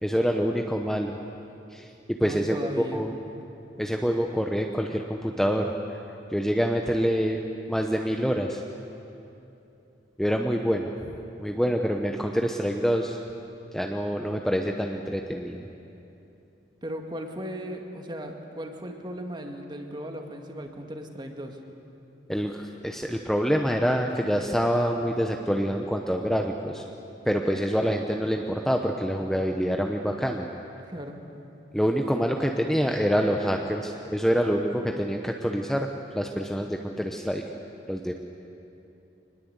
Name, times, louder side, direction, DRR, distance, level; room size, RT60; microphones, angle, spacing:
voice 1, 0.0-1.2 1.7-3.1 3.8-5.7 6.3-7.4 7.7-8.6 10.2-10.9 11.4-13.2 13.7-15.7 22.3-26.8 27.3-30.5 31.7-37.4 37.9-38.1, equal, ahead, 2 dB, 0.9 m, -26 dB
voice 2, 2.2-3.0 16.8-21.6 30.9-31.2, equal, 25° right, 3 dB, 2.0 m, -36 dB
24.5 x 20.5 x 8.1 m, 2.8 s
head